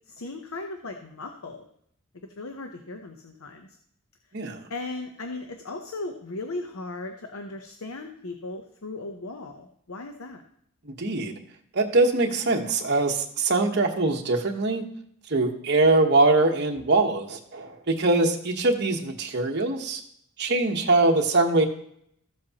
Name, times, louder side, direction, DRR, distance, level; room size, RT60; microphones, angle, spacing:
voice 1, 0.1-1.6 2.4-3.7 4.7-10.4, left 2 dB, 80° left, 5 dB, 0.8 m, -37 dB
voice 2, 4.3-4.6 10.8-11.3 11.7-14.8 15.3-20.0 20.4-21.7, right 2 dB, 50° right, 2 dB, 1.1 m, -23 dB
14.5 x 7.6 x 2.9 m, 0.69 s
head